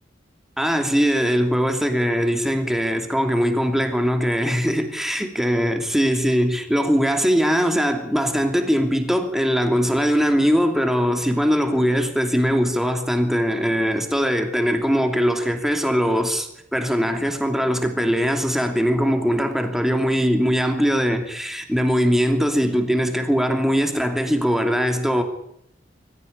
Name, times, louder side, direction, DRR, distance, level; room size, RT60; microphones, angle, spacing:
voice 1, 0.6-25.2, equal, ahead, 2.8 m, -21 dB
23.5 x 15.0 x 10.0 m
head